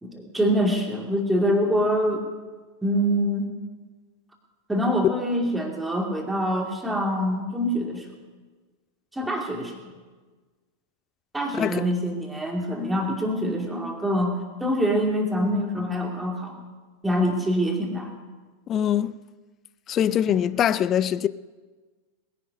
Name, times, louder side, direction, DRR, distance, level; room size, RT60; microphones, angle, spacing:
voice 1, 0.0-2.2 2.8-3.5 4.7-8.0 9.1-9.8 11.3-16.5 17.0-18.1, equal, 5° right, 2.6 m, -25 dB
voice 2, 11.5-11.9 18.7-19.1 19.9-21.3, left 10 dB, 30° left, 0.4 m, -23 dB
20.5 x 10.5 x 5.3 m
figure-of-eight pair, 90°, 0 cm